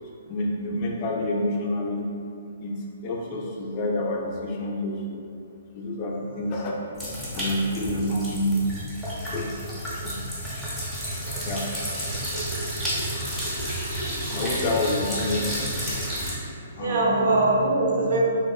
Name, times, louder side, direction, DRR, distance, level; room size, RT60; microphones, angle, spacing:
voice 1, 0.3-2.1 2.6-5.2 5.7-6.8 7.3-8.6 9.2-9.8 10.0-10.2 11.4-11.7 14.3-15.6 16.8-17.2, left 1 dB, 35° left, -2 dB, 0.4 m, -28 dB
sound 1, 7.0-16.3, equal, ahead, 0.7 m, -31 dB
voice 2, 11.1-11.5 13.1-13.3 16.8-18.2, right 2 dB, 65° right, -2 dB, 0.5 m, -23 dB
2.8 x 2.0 x 2.3 m, 2.5 s
hypercardioid pair, 145°, 0 cm